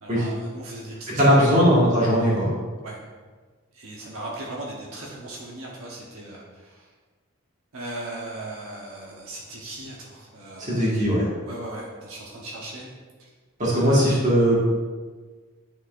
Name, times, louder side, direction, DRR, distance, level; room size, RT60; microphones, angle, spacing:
voice 1, 0.0-1.5 2.8-3.0 3.7-6.9 7.7-11.0 11.4-12.9 13.2-13.3 13.7-14.1, right 2 dB, 80° right, -3 dB, 1.0 m, -38 dB
voice 2, 1.1-2.5 10.6-11.3 13.6-14.6, equal, 35° right, -6 dB, 1.8 m, -19 dB
9.1 x 4.1 x 2.5 m, 1.4 s
head